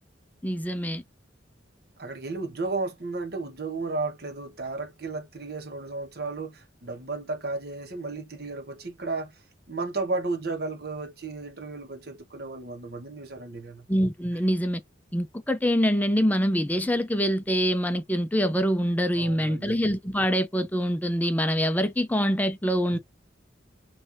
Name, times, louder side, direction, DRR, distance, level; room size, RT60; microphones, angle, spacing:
voice 1, 0.4-1.0 13.9-14.8 15.1-23.0, equal, 10° left, 0.5 m, -25 dB
voice 2, 2.0-9.4 9.7-13.9 19.1-19.8 22.9-23.0, right 3 dB, 55° right, 1.1 m, -33 dB
5.3 x 3.2 x 2.6 m
head